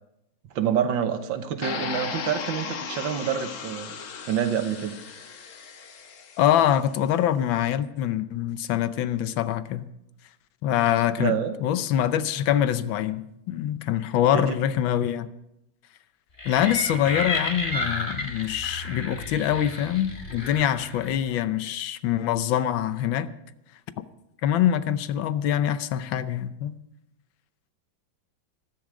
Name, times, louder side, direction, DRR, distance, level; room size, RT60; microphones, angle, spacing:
voice 1, 0.6-4.0 4.2-5.0 11.2-11.5 14.3-14.6, right 8 dB, 80° right, 1.8 m, -27 dB
sound 1, 1.6-6.6, left 6 dB, 50° left, 1.2 m, -36 dB
voice 2, 6.4-9.9 10.6-15.3 16.4-23.3 24.4-26.7, left 10 dB, 85° left, 1.5 m, -24 dB
sound 2, 16.4-21.2, left 2 dB, 25° left, 1.9 m, -32 dB
14.0 x 13.5 x 5.1 m
omnidirectional pair, 2.1 m